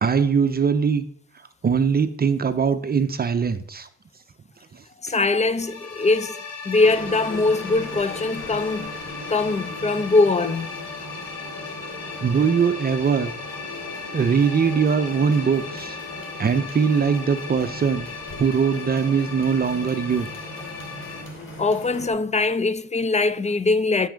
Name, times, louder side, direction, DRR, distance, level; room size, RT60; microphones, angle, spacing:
voice 1, 0.0-1.1 1.6-3.9 4.7-5.1 12.2-13.3 14.1-16.0 16.4-18.1 18.4-20.3, right 6 dB, 30° right, 0.6 m, -21 dB
voice 2, 5.0-6.4 6.7-8.9 9.3-10.8 21.6-24.1, left 3 dB, 25° left, 0.5 m, -22 dB
sound 1, 5.5-21.2, left 4 dB, 60° left, 2.2 m, -37 dB
sound 2, 6.8-22.1, left 1 dB, 40° left, 2.6 m, -39 dB
9.7 x 5.9 x 5.1 m
cardioid pair, 90°, 30 cm